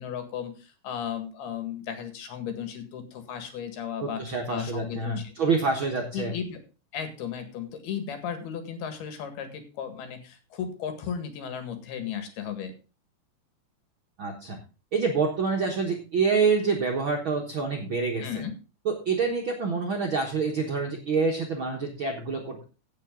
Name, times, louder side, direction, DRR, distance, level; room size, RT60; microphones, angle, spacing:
voice 1, 0.0-4.2 4.5-5.6 6.1-6.6 6.9-12.7 18.2-18.5, left 8 dB, 85° left, 8 dB, 3.7 m, -35 dB
voice 2, 4.0-6.3 14.2-14.6 14.9-18.2 18.8-22.6, right 4 dB, 65° right, 1 dB, 1.3 m, -27 dB
16.5 x 6.6 x 3.7 m, 0.33 s
omnidirectional pair, 4.4 m